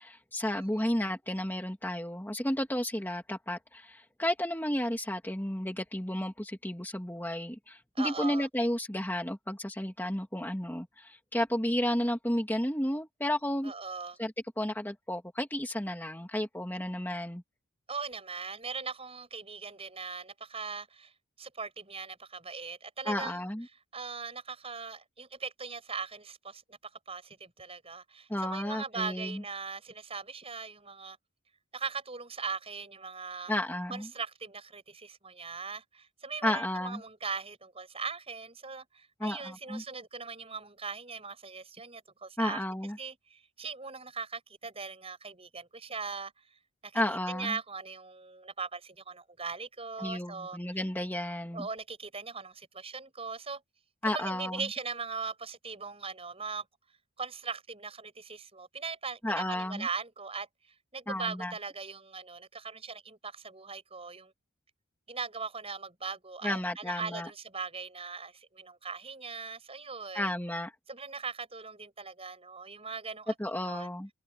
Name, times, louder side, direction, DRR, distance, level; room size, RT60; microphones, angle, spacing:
voice 1, 0.0-13.7 14.2-17.4 23.1-23.7 28.3-29.4 33.5-34.1 36.4-37.0 39.2-39.8 42.4-43.0 46.9-47.6 50.0-51.7 54.0-54.6 59.2-59.9 61.1-61.5 66.4-67.3 70.1-70.7 73.4-74.1, left 1 dB, 10° left, 2.4 m, -32 dB
voice 2, 8.0-8.5 13.6-14.2 17.9-21.1 21.4-23.4 23.9-31.2 31.7-33.5 33.9-42.6 43.0-46.3 46.8-50.8 51.5-53.6 54.0-56.7 57.2-60.5 60.9-64.3 65.1-70.3 70.9-73.3 73.6-73.9, right 5 dB, 25° right, 7.2 m, -40 dB
head